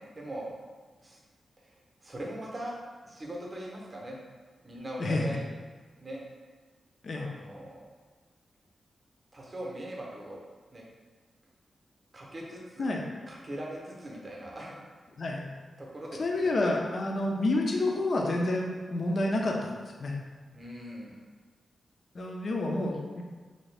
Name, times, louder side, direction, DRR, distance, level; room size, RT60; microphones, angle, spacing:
voice 1, 0.1-0.5 1.0-1.2 2.0-2.8 3.1-4.2 4.6-5.5 6.0-6.2 7.2-7.8 9.3-10.4 10.7-10.8 12.1-12.9 13.3-14.8 15.8-16.6 20.5-21.2, right 1 dB, 30° right, -3 dB, 0.7 m, -40 dB
voice 2, 5.0-5.4 7.0-7.3 12.8-13.0 15.2-15.5 16.2-20.1 22.1-23.2, left 2 dB, 50° left, 0 dB, 0.5 m, -29 dB
2.9 x 2.7 x 3.2 m, 1.4 s
wide cardioid pair, 120°, 0 cm